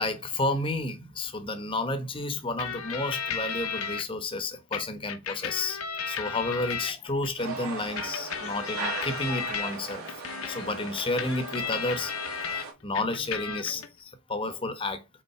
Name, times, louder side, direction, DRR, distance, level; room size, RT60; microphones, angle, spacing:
voice 1, 0.0-5.8 6.1-10.1 10.5-12.1 12.4-15.0, left 2 dB, 25° left, 1.0 m, -31 dB
sound 1, 2.6-4.0 4.7-7.3 8.0-12.6 12.9-13.9, left 6 dB, 70° left, 1.0 m, -34 dB
sound 2, 7.4-12.7, right 3 dB, 80° right, 2.7 m, -38 dB
5.6 x 4.3 x 4.3 m
head